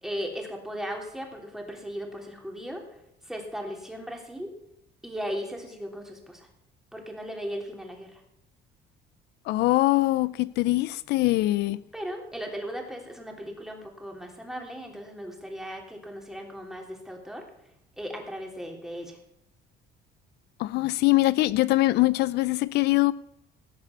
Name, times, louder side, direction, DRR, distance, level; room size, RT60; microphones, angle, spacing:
voice 1, 0.0-2.8 3.2-4.5 5.0-6.5 6.9-8.2 11.9-17.4 18.0-19.2, equal, 5° right, 3.4 m, -37 dB
voice 2, 9.5-11.8 20.6-23.1, left 18 dB, 80° left, 0.5 m, -23 dB
18.0 x 6.8 x 7.1 m
cardioid pair, 110°, 17 cm